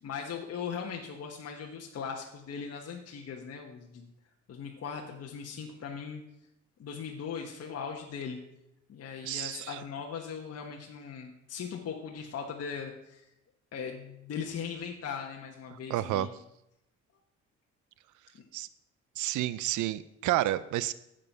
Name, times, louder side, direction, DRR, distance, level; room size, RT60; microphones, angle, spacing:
voice 1, 0.0-4.1 4.5-6.2 6.8-8.4 8.9-13.3 13.7-16.3, left 6 dB, 55° left, 1 dB, 1.3 m, -39 dB
voice 2, 9.2-9.8 15.9-16.3 18.5-18.7 19.2-20.9, right 14 dB, 75° right, 17 dB, 0.5 m, -30 dB
9.7 x 7.7 x 5.4 m, 0.85 s
cardioid pair, 90°, 30 cm